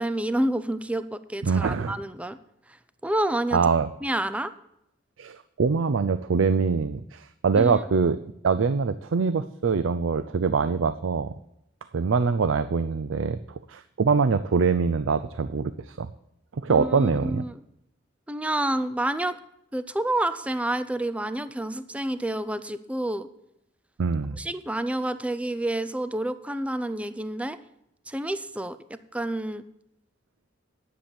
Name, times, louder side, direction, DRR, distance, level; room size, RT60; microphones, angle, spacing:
voice 1, 0.0-2.4 2.7-3.6 4.0-4.5 7.6-7.8 16.7-17.6 18.3-19.4 19.7-23.3 24.3-27.6 28.1-29.6, right 1 dB, 5° right, 13 dB, 0.5 m, -29 dB
voice 2, 1.4-2.0 3.5-3.9 5.2-8.2 8.4-11.3 11.9-16.1 16.6-17.5 24.0-24.4, right 5 dB, 85° right, 13 dB, 0.5 m, -24 dB
10.5 x 8.2 x 7.2 m, 0.80 s
head